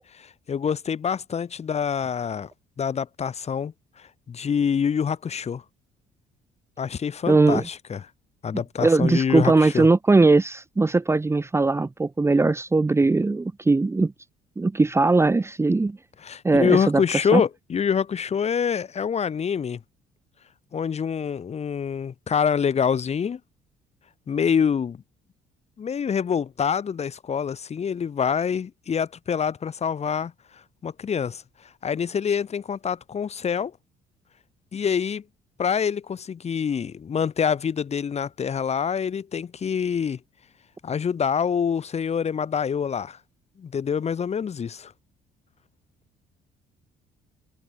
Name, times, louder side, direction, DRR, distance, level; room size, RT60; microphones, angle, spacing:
voice 1, 0.1-2.5 2.8-5.6 6.8-8.0 8.4-9.9 16.2-19.8 20.7-23.4 24.3-25.0 25.8-30.3 30.8-31.4 31.8-33.7 34.7-35.2 35.6-40.2 40.8-43.2 43.6-44.9, left 7 dB, 40° left, 6.1 m, -26 dB
voice 2, 7.3-7.7 8.8-14.1 14.6-16.0 16.4-17.0 17.3-17.4, right 3 dB, 15° right, 1.5 m, -20 dB
cardioid pair, 110°, 17 cm